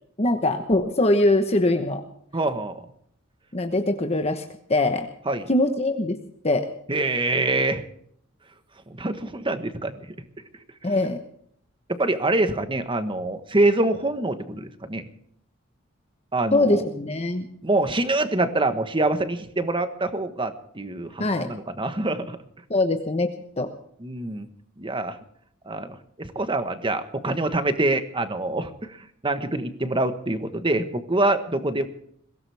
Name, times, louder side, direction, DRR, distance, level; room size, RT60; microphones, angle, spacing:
voice 1, 0.2-2.0 3.5-4.4 4.7-5.1 5.5-6.2 6.4-6.7 10.8-11.2 16.5-17.4 21.2-21.5 22.7-23.3 23.6-23.7, left 2 dB, 30° left, 5 dB, 1.1 m, -22 dB
voice 2, 2.3-2.8 5.3-5.5 6.9-7.8 8.9-10.0 11.9-15.1 16.3-16.8 17.6-22.4 24.0-24.5 24.8-25.2 25.7-29.0 29.2-31.9, right 2 dB, 25° right, 9 dB, 1.3 m, -25 dB
22.0 x 17.0 x 3.5 m, 0.66 s
head